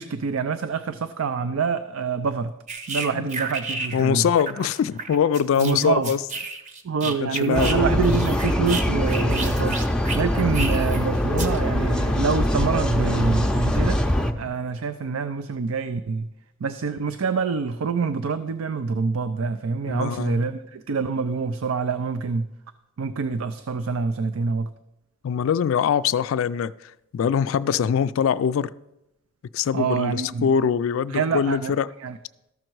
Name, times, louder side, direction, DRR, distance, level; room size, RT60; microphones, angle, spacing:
voice 1, 0.0-2.5 2.9-4.3 5.6-6.1 6.8-9.8 10.1-14.0 14.4-16.3 16.6-22.5 23.0-24.7 29.7-30.5 31.1-31.7 32.0-32.2, right 5 dB, 85° right, 10 dB, 0.5 m, -26 dB
sound 1, 2.7-4.1 4.4-7.8 8.0-11.0 11.4-11.6, right 3 dB, 35° right, 0.8 m, -32 dB
voice 2, 3.9-6.2 7.0-7.8 19.9-20.5 25.2-28.7 29.5-31.9, left 7 dB, 70° left, 15 dB, 0.3 m, -23 dB
sound 2, 7.5-14.3, left 1 dB, 5° left, 0.5 m, -23 dB
13.5 x 6.4 x 4.6 m, 0.87 s
head